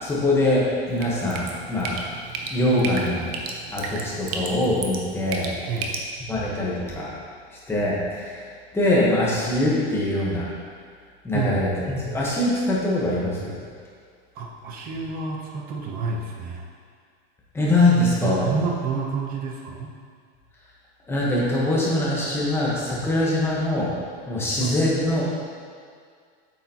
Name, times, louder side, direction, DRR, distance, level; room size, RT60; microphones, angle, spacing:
voice 1, 0.0-2.0 2.5-3.4 3.7-5.5 6.3-7.1 7.7-8.4 8.7-10.5 11.2-13.6 17.5-18.5 21.1-23.9 24.3-25.2, left 1 dB, 10° left, -6 dB, 1.2 m, -23 dB
Drip, 0.9-6.0, right 4 dB, 70° right, 1.0 m, -34 dB
voice 2, 14.3-16.7 18.2-19.9 24.6-24.7, right 4 dB, 30° right, 0 dB, 0.8 m, -29 dB
8.3 x 6.6 x 2.9 m, 2.1 s
supercardioid pair, 165°, 31 cm